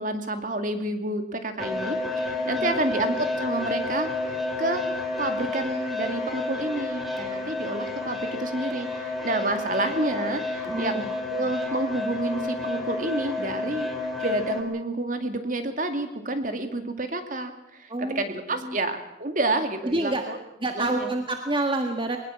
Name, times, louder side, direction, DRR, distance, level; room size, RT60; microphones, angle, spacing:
voice 1, 0.0-4.8 5.2-13.9 14.2-20.4 20.8-21.1, right 2 dB, 45° right, 7 dB, 2.3 m, -29 dB
sound 1, 1.6-14.6, left 2 dB, ahead, 3.2 m, -30 dB
voice 2, 2.6-2.9 10.6-11.1 17.9-18.2 18.6-18.8 19.8-20.2 20.6-22.2, right 2 dB, 30° right, 4 dB, 1.5 m, -28 dB
22.0 x 19.5 x 7.3 m, 0.89 s
head